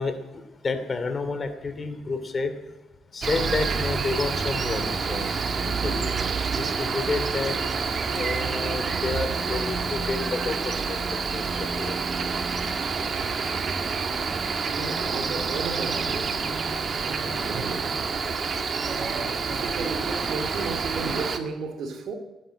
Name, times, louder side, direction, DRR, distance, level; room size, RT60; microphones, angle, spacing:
voice 1, 0.0-2.5 3.1-6.1 6.5-7.5 8.1-10.6 10.9-11.0 11.3-11.4 11.8-12.0, left 4 dB, 35° left, 2.7 m, -30 dB
Cricket, 3.2-21.4, right 5 dB, 45° right, 1.7 m, -28 dB
voice 2, 13.0-13.4 14.6-16.5 17.0-18.2 18.7-22.1, right 4 dB, 70° right, 2.6 m, -35 dB
17.5 x 10.0 x 7.7 m
cardioid pair, 90°, 0 cm